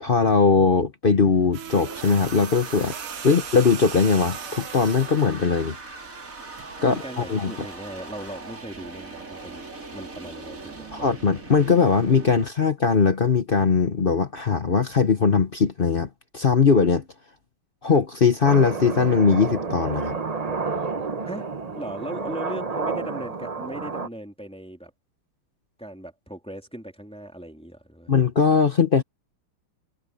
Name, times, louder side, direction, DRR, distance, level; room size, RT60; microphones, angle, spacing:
voice 1, 0.0-2.9 3.2-5.8 6.8-7.0 7.3-7.5 10.9-16.1 16.3-17.0 17.8-20.2 28.1-29.0, left 5 dB, 50° left, 0.6 m, -20 dB
sound 1, 1.2-12.5, right 3 dB, 35° right, 3.7 m, -40 dB
sound 2, 1.5-5.4 6.6-6.8, right 9 dB, 85° right, 2.2 m, -38 dB
voice 2, 6.8-11.1 21.3-24.9 25.8-28.1, right 1 dB, 5° left, 3.1 m, -38 dB
sound 3, 18.4-24.1, right 4 dB, 60° right, 0.4 m, -30 dB
omnidirectional pair, 2.4 m